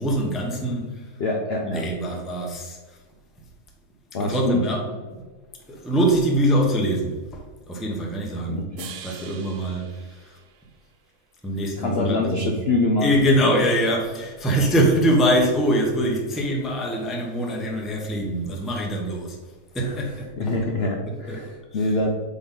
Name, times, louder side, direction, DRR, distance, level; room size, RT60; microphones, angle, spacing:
voice 1, 0.0-1.1 1.6-3.0 4.2-4.8 5.1-5.2 5.7-8.6 9.0-10.4 11.4-12.5 13.0-19.4 19.7-20.6 21.1-21.4, equal, ahead, 0 dB, 0.6 m, -23 dB
voice 2, 1.2-1.8 4.1-4.6 8.5-8.9 11.8-13.1 19.8-20.1 20.4-22.1, left 2 dB, 55° left, 1 dB, 0.7 m, -25 dB
sound 1, 8.8-11.1, right 8 dB, 80° right, 0.6 m, -43 dB
8.5 x 4.0 x 3.8 m, 1.4 s
omnidirectional pair, 1.9 m